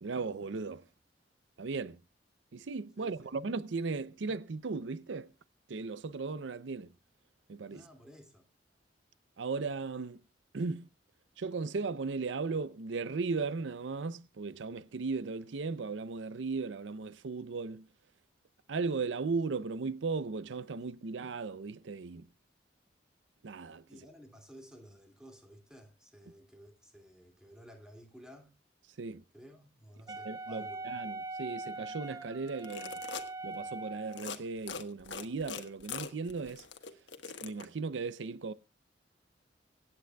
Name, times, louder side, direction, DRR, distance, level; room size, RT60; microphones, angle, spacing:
voice 1, 0.0-0.8 1.6-2.0 2.5-5.3 5.7-6.9 7.5-7.9 9.4-10.2 10.5-10.9 11.4-17.9 18.7-22.3 23.4-24.0 29.0-29.2 30.1-33.0 33.4-36.7 37.4-38.5, right 4 dB, 80° right, 0.5 m, -36 dB
voice 2, 3.0-3.4 7.7-8.4 23.9-28.5 29.3-30.8, equal, 5° right, 2.3 m, -54 dB
Wind instrument woodwind instrument, 30.1-34.2, right 2 dB, 20° right, 0.5 m, -41 dB
sound 1, 32.5-33.3 34.1-34.4 34.7-37.7, left 6 dB, 75° left, 1.3 m, -42 dB
25.0 x 8.9 x 2.3 m
head